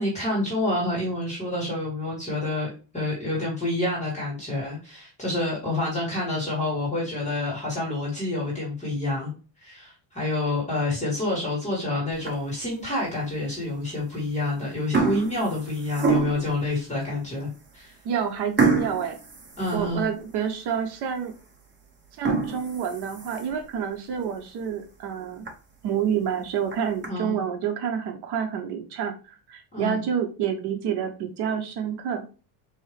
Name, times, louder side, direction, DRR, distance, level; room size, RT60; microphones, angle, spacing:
voice 1, 0.0-9.3 9.6-18.0 19.6-20.1 27.1-27.4 29.7-30.0, left 2 dB, 15° left, -4 dB, 1.7 m, -28 dB
sound 1, 12.1-12.7 13.2-13.3 14.2-14.4 14.7-16.6 17.2-17.3 17.6-17.8 18.6-20.3 20.7-20.8 21.3-21.4 22.0-23.7 24.1-24.2 24.6-24.7 25.1-25.2 25.5-25.6 26.5-27.1, right 4 dB, 25° right, 1.0 m, -27 dB
voice 2, 18.0-19.1 19.7-21.3 22.2-25.5 25.8-32.2, right 8 dB, 60° right, 6 dB, 0.8 m, -28 dB
4.5 x 2.8 x 3.2 m, 0.35 s
cardioid pair, 155°, 46 cm